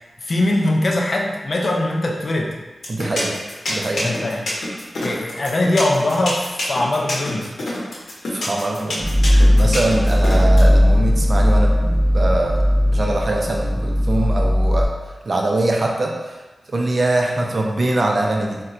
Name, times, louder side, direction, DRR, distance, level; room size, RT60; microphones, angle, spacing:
voice 1, 0.2-2.5 4.0-4.4 5.0-7.5, left 1 dB, 50° left, 0 dB, 0.4 m, -21 dB
sound 1, 2.8-10.6, left 2 dB, 90° left, 0.7 m, -26 dB
voice 2, 2.9-3.4 3.7-4.1 8.3-12.6 12.9-14.9 15.3-16.4 16.7-18.6, right 2 dB, 50° right, 0 dB, 0.4 m, -22 dB
sound 2, 9.0-14.9, equal, 10° left, 0.7 m, -16 dB
4.0 x 2.2 x 2.4 m, 1.2 s
wide cardioid pair, 110°, 0 cm